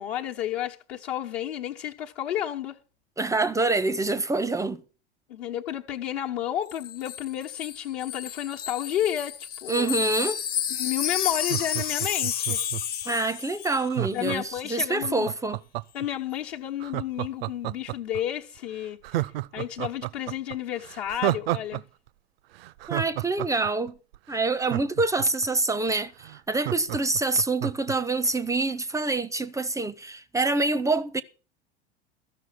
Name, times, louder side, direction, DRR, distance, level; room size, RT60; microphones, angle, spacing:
voice 1, 0.0-2.8 5.3-9.9 10.7-12.6 14.1-15.3 15.9-19.3 19.5-21.8, left 11 dB, 60° left, 1.1 m, -31 dB
voice 2, 3.2-4.8 9.7-10.4 13.1-15.6 22.9-23.9 24.3-31.2, right 3 dB, 10° right, 0.5 m, -26 dB
Wind chime, 6.7-13.9 14.2-14.4, left 9 dB, 25° left, 0.8 m, -31 dB
Laughter, 11.3-13.0 13.9-16.1 16.8-18.2 18.6-18.7 19.0-21.8 22.1-22.2 22.6-25.5 25.9-26.0 26.2-27.9 28.3-28.4, right 17 dB, 60° right, 0.5 m, -31 dB
14.0 x 6.1 x 7.7 m
figure-of-eight pair, 85°, 34 cm